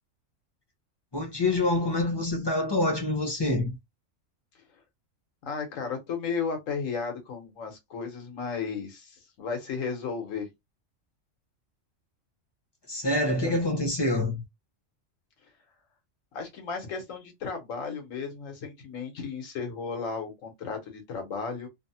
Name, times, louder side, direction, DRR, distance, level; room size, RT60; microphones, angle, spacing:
voice 1, 1.1-3.8 12.9-14.4, left 2 dB, 25° left, 0.6 m, -26 dB
voice 2, 5.4-10.5 13.4-13.6 16.3-21.7, left 5 dB, 90° left, 1.3 m, -34 dB
3.0 x 2.0 x 2.7 m
omnidirectional pair, 1.3 m